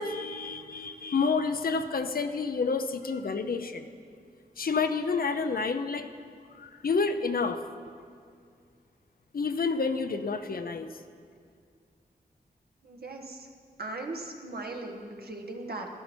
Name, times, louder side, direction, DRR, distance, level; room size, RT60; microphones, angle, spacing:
voice 1, 0.0-3.9 4.6-6.1 6.5-7.6 9.3-10.9, left 4 dB, 65° left, 8 dB, 0.6 m, -29 dB
voice 2, 12.8-13.5 13.8-15.9, right 2 dB, 70° right, 1 dB, 1.5 m, -38 dB
13.0 x 11.5 x 4.4 m, 2.2 s
wide cardioid pair, 80°, 16 cm